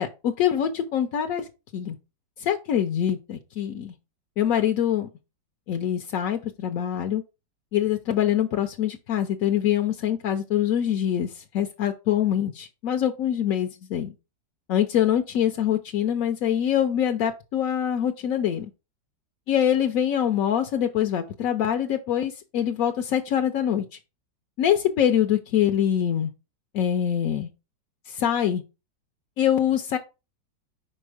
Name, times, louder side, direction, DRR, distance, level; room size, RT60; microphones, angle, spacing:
voice 1, 0.0-1.5 1.7-2.0 2.4-3.9 4.4-5.1 5.7-7.2 7.7-14.1 14.7-18.7 19.5-24.0 24.6-26.3 26.7-27.5 28.1-28.6 29.4-30.0, left 10 dB, 70° left, 0.8 m, -24 dB
5.4 x 4.3 x 4.8 m
omnidirectional pair, 2.0 m